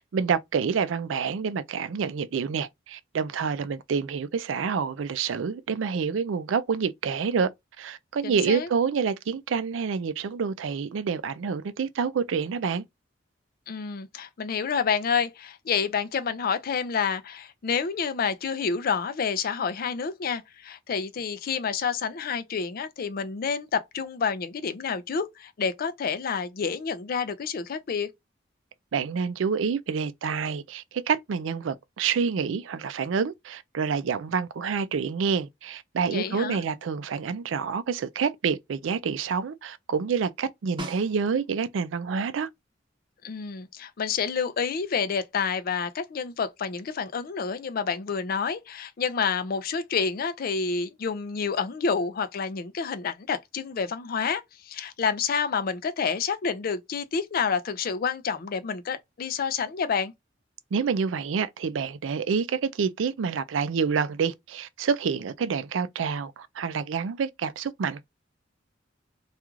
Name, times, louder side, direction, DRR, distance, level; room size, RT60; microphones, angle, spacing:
voice 1, 0.0-7.5 7.8-12.8 28.9-42.5 60.7-68.0, right 6 dB, 85° right, 0.4 m, -28 dB
voice 2, 8.2-8.7 13.7-28.1 36.1-36.6 43.2-60.1, left 6 dB, 50° left, 0.4 m, -29 dB
Snare drum, 40.8-41.7 46.1-46.2, right 1 dB, 25° right, 0.7 m, -39 dB
2.4 x 2.4 x 3.0 m
head